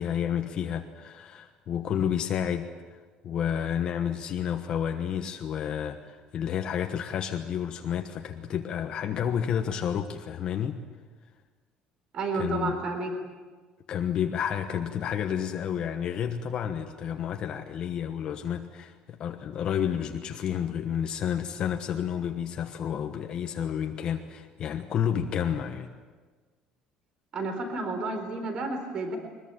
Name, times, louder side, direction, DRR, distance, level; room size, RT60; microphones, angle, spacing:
voice 1, 0.0-10.8 12.3-12.8 13.9-25.9, left 9 dB, 40° left, 4 dB, 1.3 m, -30 dB
voice 2, 12.1-13.1 27.3-29.2, right 3 dB, 40° right, 6 dB, 4.0 m, -31 dB
23.0 x 21.0 x 9.1 m, 1.4 s
cardioid pair, 175°, 2 cm